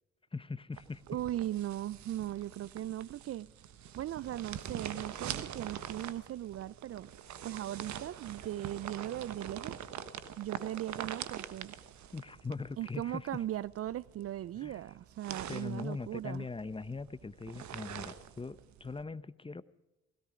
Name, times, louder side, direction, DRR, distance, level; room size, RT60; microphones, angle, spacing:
voice 1, 0.3-1.0 12.1-13.3 14.6-14.8 15.5-19.6, left 4 dB, 20° left, 0.8 m, -41 dB
sound 1, 0.7-19.0, right 9 dB, 65° right, 1.3 m, -45 dB
voice 2, 1.1-3.5 4.0-7.1 7.4-9.8 10.4-11.7 12.8-16.5, right 13 dB, 50° right, 0.4 m, -38 dB
17.0 x 17.0 x 4.9 m
supercardioid pair, 60°, 30 cm